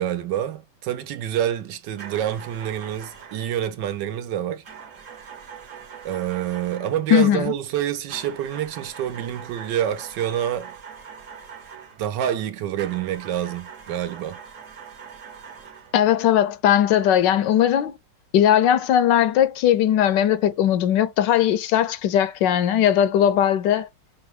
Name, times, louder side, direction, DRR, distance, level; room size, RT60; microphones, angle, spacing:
voice 1, 0.0-4.6 6.0-10.7 12.0-14.4, right 11 dB, 75° right, 1.4 m, -27 dB
sound 1, 2.0-3.6 4.6-7.1 8.1-12.1 12.8-16.0, right 7 dB, 50° right, 1.3 m, -42 dB
voice 2, 7.1-7.4 15.9-17.9 18.3-23.9, left 10 dB, 75° left, 1.2 m, -19 dB
5.7 x 2.2 x 3.1 m
omnidirectional pair, 2.0 m